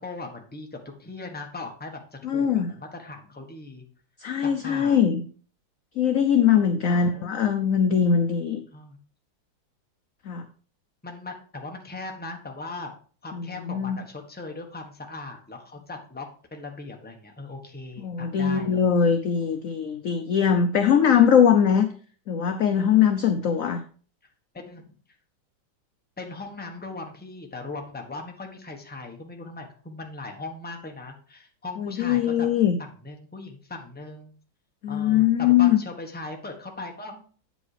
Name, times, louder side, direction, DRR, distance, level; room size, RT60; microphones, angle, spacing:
voice 1, 0.0-3.8 4.4-5.0 6.8-7.3 8.7-9.0 11.0-12.9 13.2-19.0 24.5-24.8 26.2-32.5 33.0-34.3 34.9-37.3, left 3 dB, 5° left, 2 dB, 1.0 m, -39 dB
voice 2, 2.2-2.7 4.2-5.2 6.0-8.6 10.3-10.4 13.3-14.0 18.0-21.9 22.3-23.8 31.8-32.8 34.8-35.8, left 8 dB, 65° left, 8 dB, 0.8 m, -21 dB
8.7 x 5.2 x 4.9 m, 0.42 s
omnidirectional pair, 2.1 m